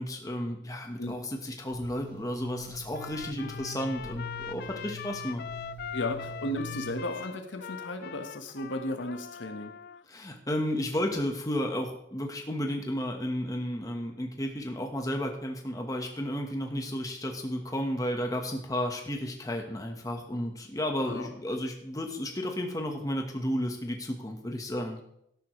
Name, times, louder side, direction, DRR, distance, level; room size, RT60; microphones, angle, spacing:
voice 1, 0.0-5.4 10.1-25.0, equal, 20° left, 2 dB, 1.3 m, -33 dB
sound 1, 1.6-7.0, left 1 dB, 30° right, 5.3 m, -44 dB
Trumpet, 2.9-10.0, left 8 dB, 50° left, 0.3 m, -42 dB
voice 2, 5.9-9.7 21.0-21.3, left 1 dB, 75° left, 5 dB, 1.4 m, -35 dB
13.0 x 11.5 x 3.2 m, 0.74 s
head